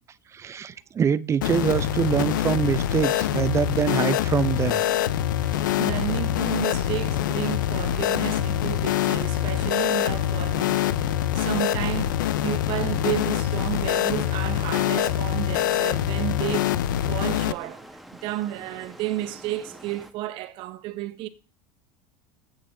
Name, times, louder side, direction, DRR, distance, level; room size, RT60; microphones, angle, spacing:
voice 1, 0.3-4.8, right 7 dB, 30° right, 0.7 m, -24 dB
sound 1, 1.4-17.5, left 12 dB, 90° left, 0.6 m, -25 dB
sound 2, 1.4-20.1, right 1 dB, ahead, 1.7 m, -46 dB
voice 2, 5.4-16.8 17.1-21.3, right 15 dB, 60° right, 1.3 m, -32 dB
14.5 x 8.8 x 3.9 m
supercardioid pair, 110°, 10 cm